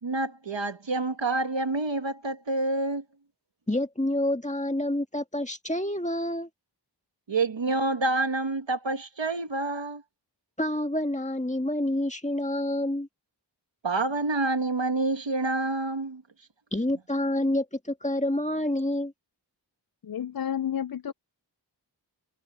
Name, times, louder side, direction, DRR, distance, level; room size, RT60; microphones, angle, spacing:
voice 1, 0.0-3.0 7.3-10.0 13.8-16.2, right 2 dB, 90° right, 1.5 m, -28 dB
voice 2, 3.7-6.5 10.6-13.1 16.7-19.1, left 1 dB, 15° left, 1.8 m, -28 dB
voice 3, 20.0-21.1, left 9 dB, 55° left, 0.5 m, -31 dB
wide cardioid pair, 45°, 43 cm